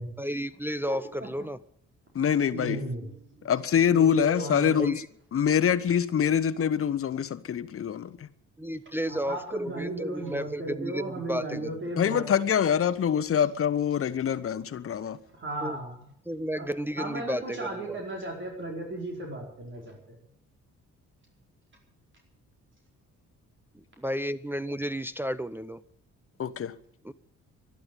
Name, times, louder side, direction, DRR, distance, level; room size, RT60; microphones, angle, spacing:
voice 1, 0.2-1.6 4.8-5.1 8.6-11.8 15.6-15.8 16.3-18.0 24.0-25.8 27.0-27.1, equal, 5° right, 0.6 m, -32 dB
voice 2, 0.9-1.3 2.5-3.5 3.9-4.9 9.0-12.3 13.0-13.1 15.3-16.1 16.5-16.7 17.0-20.2, right 1 dB, 40° right, 4.7 m, -36 dB
voice 3, 2.1-2.8 3.4-5.0 5.3-8.3 12.0-15.2 26.4-26.7, left 8 dB, 45° left, 1.1 m, -25 dB
12.0 x 12.0 x 9.1 m
cardioid pair, 90°, 30 cm